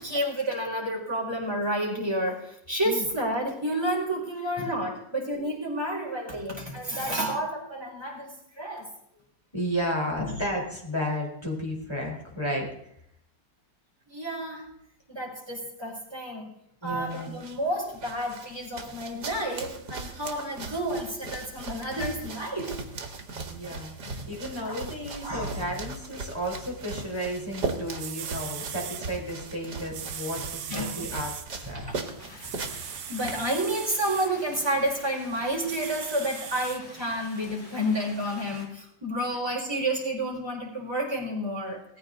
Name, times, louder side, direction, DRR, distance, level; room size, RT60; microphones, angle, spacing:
voice 1, 0.0-8.9 10.2-10.4 14.1-14.7 15.1-16.5 16.8-22.8 24.0-24.3 24.6-24.8 25.2-25.6 29.7-29.8 30.7-31.1 31.7-41.8, right 1 dB, 15° right, -3 dB, 4.8 m, -30 dB
voice 2, 9.5-12.9 16.8-17.3 23.3-31.8, equal, 15° left, -1 dB, 4.3 m, -33 dB
sound 1, 16.9-33.8, right 3 dB, 65° right, 2.2 m, -39 dB
sound 2, 27.7-27.8 28.0-29.0 29.9-31.5 32.4-34.3 35.7-36.8 37.4-37.5, right 9 dB, 80° right, 1.6 m, -38 dB
sound 3, 32.2-38.7, left 1 dB, 75° left, 4.8 m, -48 dB
19.0 x 14.5 x 4.0 m, 0.72 s
omnidirectional pair, 1.9 m